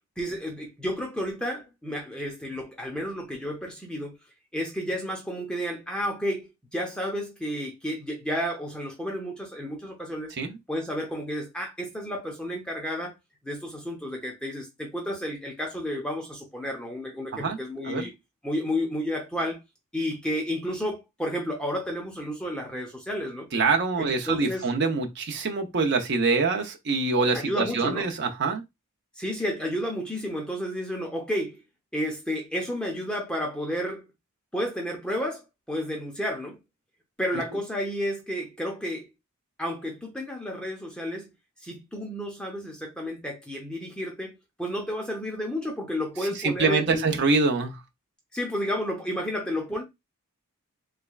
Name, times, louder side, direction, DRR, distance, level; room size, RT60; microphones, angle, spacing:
voice 1, 0.2-4.2 4.5-10.3 10.7-13.2 13.4-18.1 18.4-19.6 19.9-23.5 24.0-24.7 27.3-28.1 29.2-31.6 31.9-34.0 34.5-36.6 37.2-39.1 39.6-41.3 41.6-47.0 48.3-49.8, equal, 5° left, 0.7 m, -31 dB
voice 2, 23.5-28.6 46.4-47.8, right 4 dB, 55° right, 0.6 m, -25 dB
3.5 x 3.2 x 2.3 m
head